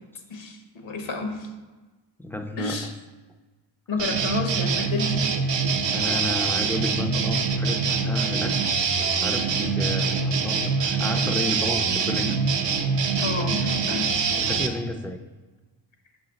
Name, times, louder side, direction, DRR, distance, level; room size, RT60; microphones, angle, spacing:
voice 1, 0.3-1.5 2.6-2.9 3.9-5.4 13.2-14.1, left 3 dB, 80° left, 3 dB, 1.1 m, -30 dB
voice 2, 2.2-2.8 5.9-8.7 9.0-12.4 14.4-15.2, left 1 dB, 5° left, 5 dB, 0.3 m, -32 dB
sound 1, 4.0-14.7, right 5 dB, 70° right, 0.7 m, -24 dB
6.1 x 4.1 x 3.9 m, 1.2 s
wide cardioid pair, 140°, 45 cm